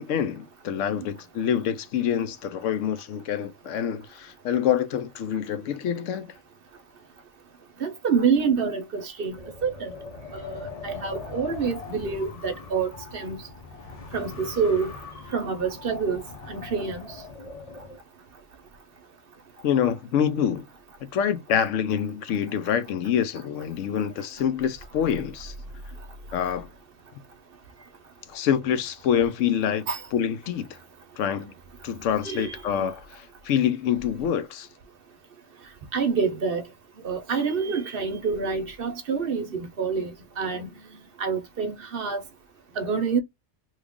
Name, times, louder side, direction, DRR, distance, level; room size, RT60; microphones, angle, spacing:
voice 1, 0.0-6.3 19.6-20.6 21.1-25.5 26.3-26.7 28.3-30.7 31.2-31.5 31.8-34.7, left 8 dB, 80° left, 1.0 m, -26 dB
voice 2, 7.8-9.9 10.3-13.4 14.1-14.9 15.3-16.2 16.5-17.1 29.9-30.0 32.2-32.6 35.9-36.6 37.0-40.7 41.2-42.2 42.8-43.2, right 5 dB, 55° right, 0.8 m, -27 dB
Wind, 9.3-18.0, left 4 dB, 35° left, 0.7 m, -41 dB
3.1 x 2.3 x 3.5 m
omnidirectional pair, 1.3 m